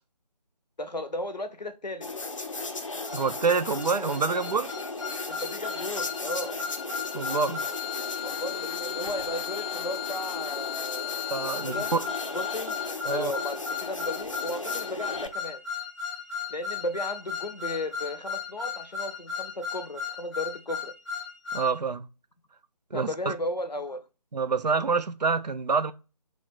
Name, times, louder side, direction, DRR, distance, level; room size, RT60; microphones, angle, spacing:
voice 1, 0.8-2.1 5.3-6.6 8.2-11.3 11.6-11.9 12.3-12.8 13.1-15.6 16.5-20.9 22.9-24.1, left 1 dB, 90° left, 0.7 m, -35 dB
sound 1, 2.0-15.3, left 3 dB, 50° left, 0.5 m, -36 dB
sound 2, 3.1-21.7, left 7 dB, 5° left, 0.6 m, -36 dB
voice 2, 3.1-4.7 7.1-7.6 11.3-12.0 13.0-13.3 21.5-22.1 22.9-23.3 24.3-25.9, right 5 dB, 80° right, 0.4 m, -27 dB
3.2 x 2.4 x 3.9 m
figure-of-eight pair, 155°, 21 cm